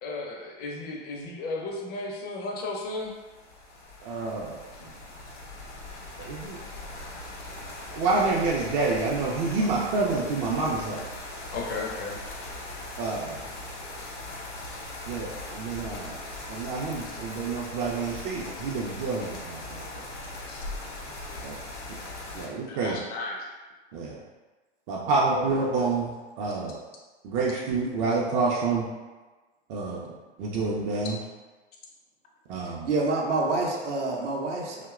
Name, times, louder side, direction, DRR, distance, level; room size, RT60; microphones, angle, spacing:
voice 1, 0.0-3.1 9.6-9.8 11.5-12.2 20.5-20.6 22.7-23.5, left 2 dB, 30° left, -1 dB, 0.5 m, -34 dB
sound 1, 3.0-22.5, left 2 dB, 85° left, 0.6 m, -40 dB
voice 2, 4.0-4.6 6.2-6.6 7.9-11.0 13.0-13.3 15.1-16.1 16.5-19.8 21.4-21.5 22.3-23.0 23.9-24.2 24.9-26.1 26.4-26.8 27.2-28.8 29.7-30.0 30.4-31.2 32.5-32.9, right 3 dB, 35° right, -4 dB, 0.4 m, -28 dB
voice 3, 32.9-34.9, right 3 dB, 80° right, -1 dB, 0.6 m, -27 dB
2.7 x 2.1 x 2.3 m, 1.3 s
hypercardioid pair, 95°, 35 cm